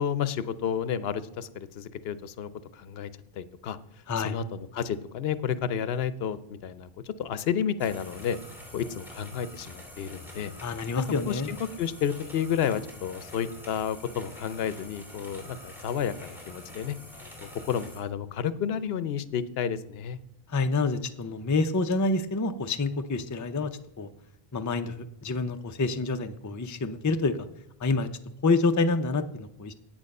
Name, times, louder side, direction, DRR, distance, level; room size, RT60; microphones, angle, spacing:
voice 1, 0.0-3.8 4.2-8.4 8.7-10.5 11.0-17.0 17.5-20.2, left 8 dB, 75° left, 15 dB, 0.8 m, -31 dB
sound 1, 7.8-18.0, left 1 dB, ahead, 2.5 m, -46 dB
voice 2, 10.6-11.5 20.5-23.7 24.0-24.1 24.5-24.9 25.2-27.4 27.8-28.1 28.4-29.7, left 3 dB, 25° left, 8 dB, 0.4 m, -27 dB
8.8 x 8.8 x 5.3 m, 0.81 s
omnidirectional pair, 1.0 m